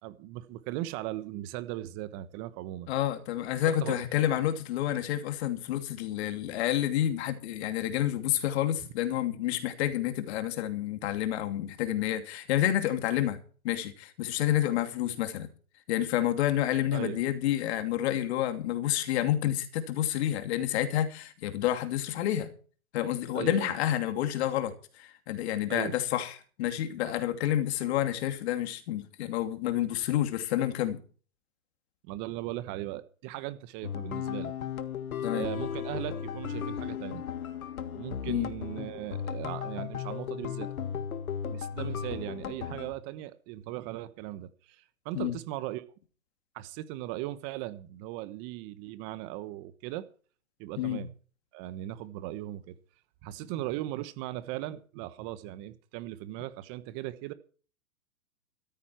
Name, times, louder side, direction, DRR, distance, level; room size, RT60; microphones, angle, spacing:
voice 1, 0.0-2.9 3.8-4.0 16.9-17.2 23.3-23.7 25.7-25.9 32.1-34.5 35.3-37.2 37.9-40.7 41.4-45.8 46.5-50.1 50.6-51.1 51.5-52.7 53.2-57.3, right 15 dB, 30° right, 1.2 m, -38 dB
voice 2, 2.9-13.4 13.6-15.5 15.9-22.5 22.9-31.0 35.2-35.5 38.3-38.5 45.1-45.3 50.8-51.0, left 12 dB, 45° left, 2.7 m, -29 dB
sound 1, 33.8-42.9, left 8 dB, 75° left, 1.9 m, -36 dB
14.5 x 14.0 x 4.5 m
hypercardioid pair, 135°, 43 cm